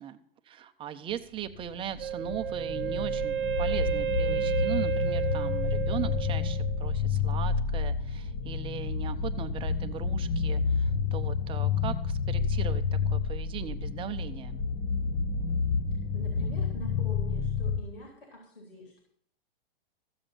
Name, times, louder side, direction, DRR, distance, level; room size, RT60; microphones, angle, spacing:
voice 1, 0.0-14.6, right 9 dB, 15° right, 9 dB, 0.8 m, -39 dB
sound 1, 1.5-17.8, left 5 dB, 30° left, 1.2 m, -29 dB
Wind instrument woodwind instrument, 2.0-6.8, right 9 dB, 60° right, 0.9 m, -32 dB
voice 2, 16.1-19.0, left 1 dB, 70° left, 0 dB, 3.7 m, -45 dB
14.5 x 7.8 x 5.8 m, 0.66 s
figure-of-eight pair, 110°, 30 cm